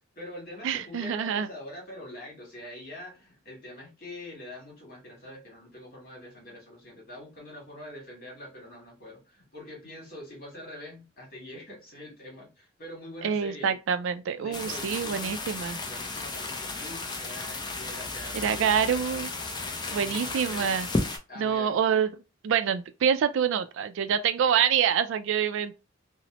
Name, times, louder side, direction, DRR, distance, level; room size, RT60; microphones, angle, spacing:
voice 1, 0.0-13.7 14.4-15.4 15.8-19.3 19.8-20.8 21.3-21.8, left 1 dB, 45° left, 1.5 m, -44 dB
voice 2, 0.6-1.5 13.2-15.8 18.3-19.3 19.9-20.9 21.4-22.1 22.4-25.7, right 7 dB, 65° right, 0.3 m, -26 dB
sound 1, 14.5-21.2, left 3 dB, 20° left, 0.4 m, -34 dB
2.8 x 2.0 x 2.9 m
head